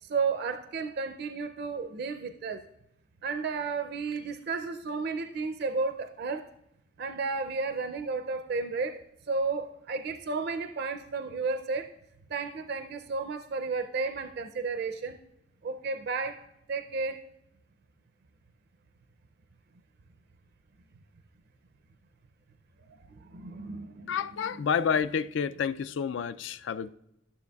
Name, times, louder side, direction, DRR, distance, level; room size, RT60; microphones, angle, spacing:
voice 1, 0.0-2.7 3.2-6.4 7.0-9.0 9.3-11.9 12.3-15.2 15.6-17.2 23.2-24.2, right 4 dB, 55° right, 0.4 m, -33 dB
voice 2, 24.1-26.9, left 7 dB, 70° left, 0.3 m, -29 dB
12.0 x 6.9 x 2.3 m
head